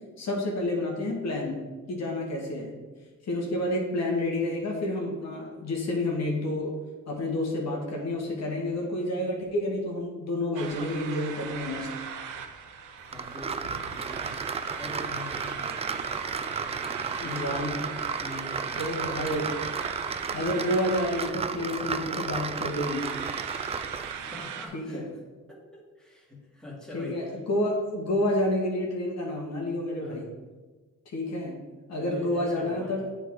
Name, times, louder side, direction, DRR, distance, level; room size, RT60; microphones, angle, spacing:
voice 1, 0.2-1.6 1.9-2.7 3.2-6.8 7.1-11.9 17.2-17.8 18.8-19.6 20.3-23.1 24.7-25.0 26.9-30.3 31.1-31.6 31.9-33.0, left 1 dB, 60° left, -1 dB, 1.6 m, -29 dB
sound 1, 10.5-24.7, right 7 dB, 80° right, 0.8 m, -39 dB
voice 2, 13.1-14.4 14.7-16.2 16.6-18.9 23.7-25.2 25.5-27.3 30.0-30.3 32.0-33.1, left 1 dB, ahead, -4 dB, 2.1 m, -43 dB
sound 2, 13.1-24.2, right 5 dB, 20° right, 0.3 m, -34 dB
8.0 x 4.0 x 4.7 m, 1.3 s
cardioid pair, 90°, 30 cm